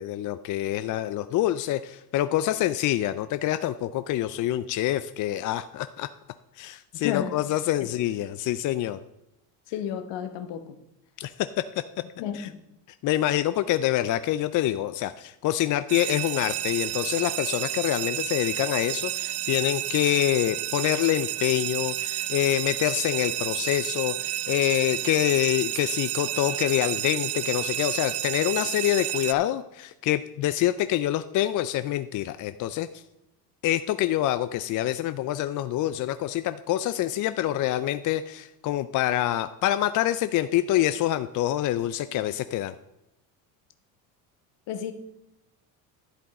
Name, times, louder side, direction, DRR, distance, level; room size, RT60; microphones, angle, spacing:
voice 1, 0.0-6.1 6.6-9.0 11.2-11.6 12.3-12.5 13.0-33.0 33.6-42.8, left 13 dB, 45° left, 12 dB, 0.4 m, -26 dB
voice 2, 7.0-7.4 9.7-10.7 12.2-12.6 44.7-44.9, left 9 dB, 60° left, 9 dB, 1.3 m, -31 dB
sound 1, 15.9-29.3, right 14 dB, 55° right, 0.6 m, -31 dB
11.5 x 7.7 x 4.2 m, 0.88 s
supercardioid pair, 100°, 47 cm